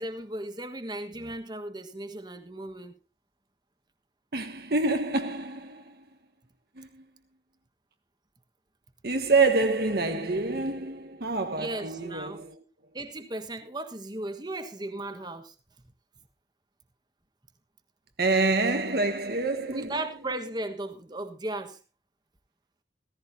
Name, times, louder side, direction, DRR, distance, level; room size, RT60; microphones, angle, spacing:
voice 1, 0.0-2.9 11.6-12.4 12.9-15.5 19.6-21.8, right 1 dB, 25° right, 1.4 m, -36 dB
voice 2, 4.3-6.0 6.8-7.0 9.0-12.6 18.2-20.0, right 3 dB, 55° right, 1.3 m, -27 dB
16.0 x 15.5 x 2.7 m
head